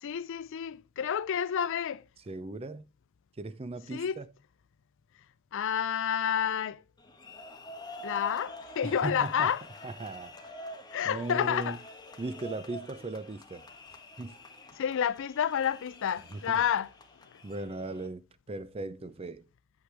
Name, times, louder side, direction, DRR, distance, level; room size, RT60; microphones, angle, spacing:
voice 1, 0.0-2.0 3.9-4.2 5.5-6.8 8.0-9.6 10.9-11.8 14.8-16.9, left 8 dB, 60° left, 0.4 m, -29 dB
voice 2, 2.3-2.9 3.4-4.3 8.8-9.5 9.8-10.5 11.0-11.8 12.2-13.7 14.2-14.4 16.3-16.6 17.4-19.4, right 2 dB, 25° right, 0.5 m, -38 dB
sound 1, 7.0-18.1, left 1 dB, 20° left, 1.2 m, -47 dB
8.4 x 8.1 x 3.4 m
head